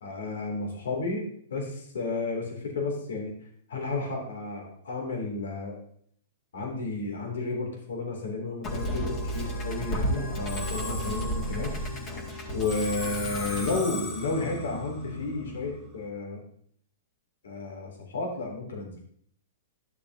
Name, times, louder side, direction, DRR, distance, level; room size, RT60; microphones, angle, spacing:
voice 1, 0.0-3.3 3.7-5.8 6.5-11.7 12.5-16.4 17.4-19.0, left 3 dB, 80° left, 0 dB, 2.7 m, -32 dB
Musical instrument, 8.6-16.0, equal, 25° left, 2.0 m, -33 dB
12.5 x 7.0 x 2.8 m, 0.64 s
hypercardioid pair, 130°, 0 cm